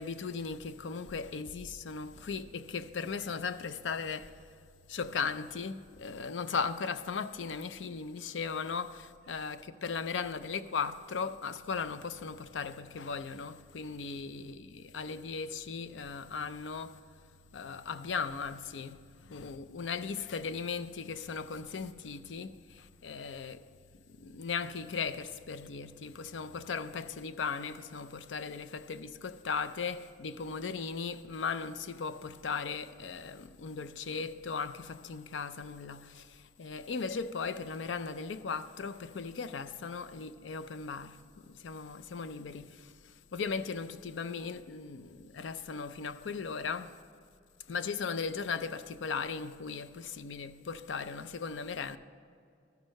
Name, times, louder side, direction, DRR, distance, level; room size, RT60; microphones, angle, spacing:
voice 1, 0.0-4.4 4.9-17.0 17.5-19.0 19.3-23.7 24.1-47.0 47.7-52.0, left 5 dB, 80° left, 0.5 m, -37 dB
13.0 x 6.3 x 6.4 m
head